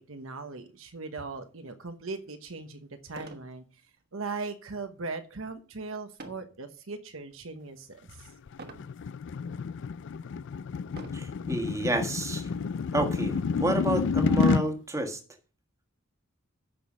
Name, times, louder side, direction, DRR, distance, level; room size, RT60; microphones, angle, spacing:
voice 1, 0.0-3.6 4.1-8.3, right 3 dB, 65° right, 1.1 m, -39 dB
sound 1, 2.1-2.2 3.1-3.5 4.0-4.3 6.2-6.6 7.2-7.6 8.6-8.9 9.7-9.8 10.9-11.4 12.4-12.5 12.8-12.9 13.4-14.5, right 2 dB, 50° right, 1.3 m, -46 dB
sound 2, 8.2-14.6, left 5 dB, 60° left, 0.4 m, -29 dB
voice 2, 11.1-12.5 12.9-15.2, right 1 dB, 15° right, 1.6 m, -30 dB
9.1 x 6.1 x 6.2 m
head